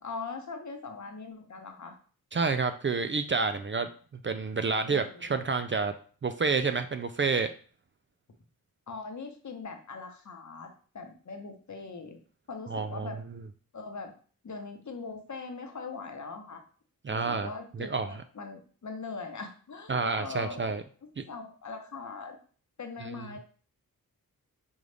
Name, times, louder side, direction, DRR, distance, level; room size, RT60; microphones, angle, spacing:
voice 1, 0.0-2.0 4.9-5.3 8.9-10.7 10.9-12.2 12.5-13.2 13.7-14.1 14.4-16.6 17.1-20.8 21.3-22.4 22.8-23.4, left 4 dB, 50° left, 5 dB, 0.9 m, -41 dB
voice 2, 2.3-3.9 4.2-5.9 6.2-7.5 12.7-13.1 17.0-17.5 17.8-18.1 19.9-20.8 21.2-21.3, right 4 dB, 35° right, 8 dB, 0.4 m, -29 dB
5.3 x 2.4 x 3.3 m, 0.41 s
wide cardioid pair, 70°, 36 cm